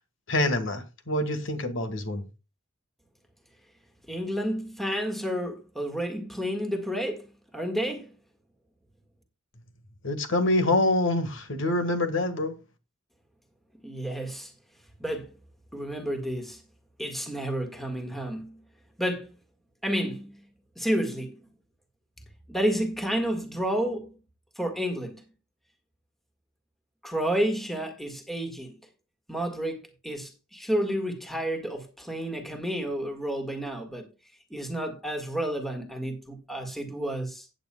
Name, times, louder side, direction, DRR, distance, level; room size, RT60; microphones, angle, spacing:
voice 1, 0.3-2.2 10.0-12.6, left 1 dB, 65° left, 1.6 m, -26 dB
voice 2, 4.1-7.2 7.5-8.1 13.8-14.5 15.0-15.3 15.7-16.6 17.0-18.6 19.0-19.3 19.8-20.4 20.7-21.3 22.5-24.1 24.6-25.2 27.0-28.7 29.3-34.1 34.5-37.5, equal, ahead, 1.7 m, -30 dB
16.0 x 8.9 x 2.2 m
head